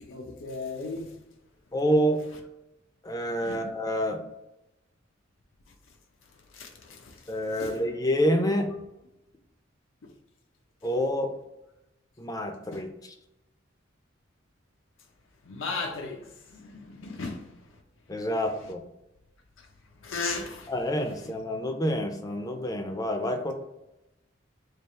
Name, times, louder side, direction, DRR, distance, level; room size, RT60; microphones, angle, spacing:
voice 1, 0.1-1.1 3.4-3.6 6.5-7.0 7.6-7.7 15.5-16.2 16.8-17.4 20.0-20.7, left 3 dB, 90° left, 0.6 m, -35 dB
voice 2, 1.7-2.2 3.0-4.2 7.3-8.7 10.8-11.3 12.2-13.1 18.1-18.8 20.7-23.5, equal, 20° left, 0.4 m, -27 dB
3.3 x 2.4 x 4.3 m
head